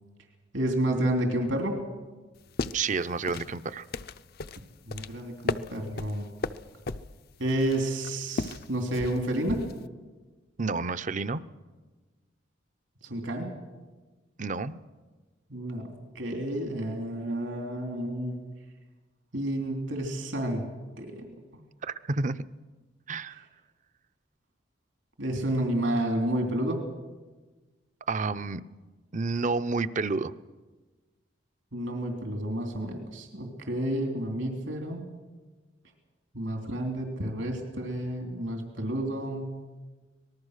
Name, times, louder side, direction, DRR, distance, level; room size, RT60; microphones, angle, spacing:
voice 1, 0.5-1.8 4.9-6.3 7.4-9.6 13.0-13.5 15.5-18.4 19.3-20.7 21.0-21.3 25.2-26.8 31.7-35.0 36.3-39.7, right 1 dB, 80° right, 3 dB, 3.1 m, -30 dB
sound 1, 2.4-9.9, left 3 dB, 55° left, 0.6 m, -37 dB
voice 2, 2.7-3.9 10.6-11.4 14.4-14.8 21.8-22.4 23.1-23.4 28.1-28.6 29.1-30.3, right 4 dB, 40° right, 14 dB, 0.6 m, -30 dB
25.0 x 19.5 x 6.6 m, 1.3 s
head